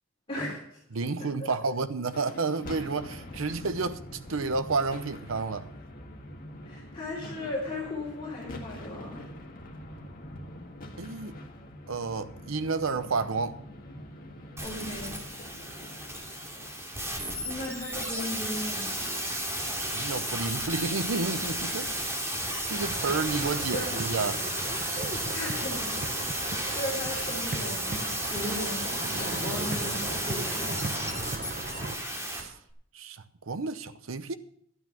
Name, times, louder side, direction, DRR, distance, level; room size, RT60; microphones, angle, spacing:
voice 1, 0.3-0.8 1.4-1.5 6.6-9.3 14.6-15.1 15.4-15.7 17.4-18.9 23.7-24.1 25.3-31.3, left 1 dB, 25° left, 3.7 m, -37 dB
voice 2, 0.9-4.0 4.3-5.7 11.0-11.4 11.9-13.6 19.9-22.2 22.7-24.4 32.3-32.5 32.9-34.4, right 4 dB, 75° right, 0.8 m, -31 dB
sound 1, 2.1-18.4, left 1 dB, 45° left, 1.8 m, -45 dB
sound 2, 14.6-32.4 32.7-32.8, right 1 dB, 15° right, 2.9 m, -33 dB
sound 3, 22.8-32.0, right 3 dB, 40° right, 0.9 m, -37 dB
12.5 x 9.2 x 6.0 m
head